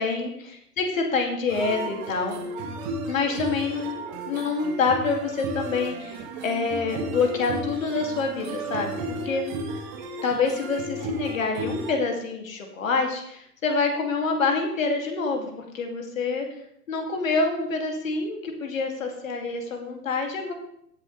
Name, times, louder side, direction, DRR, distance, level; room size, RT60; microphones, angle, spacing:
voice 1, 0.0-2.4 3.1-9.5 10.2-16.5 16.9-20.5, left 4 dB, 55° left, 3 dB, 2.7 m, -27 dB
sound 1, 1.5-11.9, right 2 dB, 30° right, 1.7 m, -34 dB
22.5 x 7.6 x 3.3 m, 0.72 s
figure-of-eight pair, 115°, 47 cm